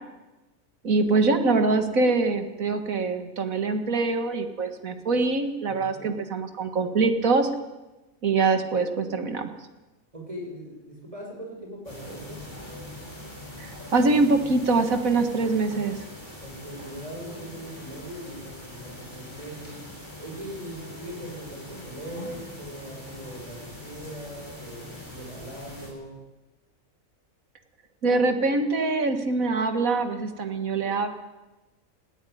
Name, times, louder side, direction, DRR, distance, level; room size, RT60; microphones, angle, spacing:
voice 1, 0.8-7.5 8.2-9.5 13.6-16.0 28.0-31.1, right 3 dB, 90° right, 7 dB, 2.1 m, -24 dB
voice 2, 5.7-6.1 10.1-12.4 16.4-19.8 20.2-26.2, right 1 dB, 25° right, -1 dB, 6.5 m, -40 dB
sound 1, 11.8-25.9, left 1 dB, 35° left, 7.8 m, -42 dB
19.5 x 16.0 x 9.4 m, 1.1 s
omnidirectional pair, 1.4 m